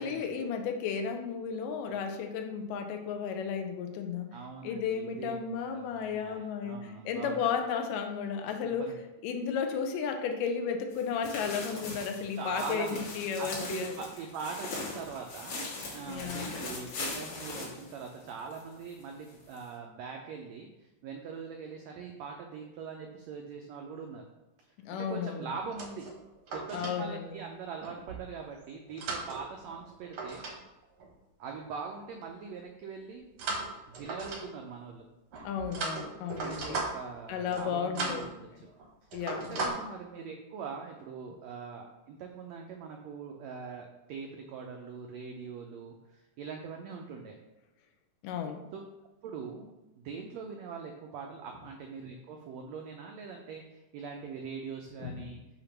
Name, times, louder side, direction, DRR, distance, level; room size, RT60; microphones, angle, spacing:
voice 1, 0.0-4.3 4.6-8.9 9.2-13.9 16.1-16.5 24.8-25.5 26.7-27.4 35.4-36.8 37.3-38.4 39.1-39.7 48.2-48.6 55.0-55.3, left 6 dB, 80° left, 6 dB, 2.2 m, -34 dB
voice 2, 4.3-7.4 8.6-9.0 12.3-13.0 13.4-20.7 21.0-24.2 24.9-26.0 26.5-30.4 31.4-33.3 33.9-35.0 36.3-38.2 39.3-47.4 48.7-48.8 49.2-55.4, right 5 dB, 90° right, 2 dB, 1.5 m, -42 dB
sound 1, 10.9-18.6 18.9-19.0 19.5-19.6, left 3 dB, 65° left, 2.8 m, -40 dB
sound 2, 25.6-27.0 27.8-28.2 28.8-30.6 30.8-31.1 33.4-34.7 35.3-37.2 37.5-37.7 37.9-38.3 38.7-38.9 39.1-39.7, right 3 dB, 65° right, 1.3 m, -37 dB
6.7 x 2.8 x 5.8 m, 0.98 s
omnidirectional pair, 3.9 m